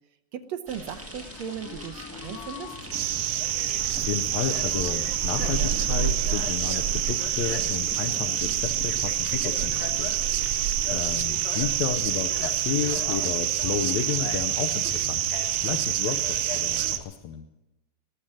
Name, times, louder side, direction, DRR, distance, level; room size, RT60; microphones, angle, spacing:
voice 1, 0.3-2.7, right 8 dB, 70° right, 10 dB, 1.8 m, -36 dB
sound 1, 0.7-17.0, left 7 dB, 90° left, 2.5 m, -42 dB
sound 2, 0.7-17.0, right 1 dB, 10° right, 0.6 m, -42 dB
sound 3, 2.9-17.0, right 11 dB, 90° right, 1.2 m, -27 dB
voice 2, 3.3-3.7 3.9-10.1 10.4-10.6 10.9-17.4, left 9 dB, 75° left, 5 dB, 2.0 m, -32 dB
19.5 x 7.5 x 8.8 m, 0.99 s
omnidirectional pair, 3.5 m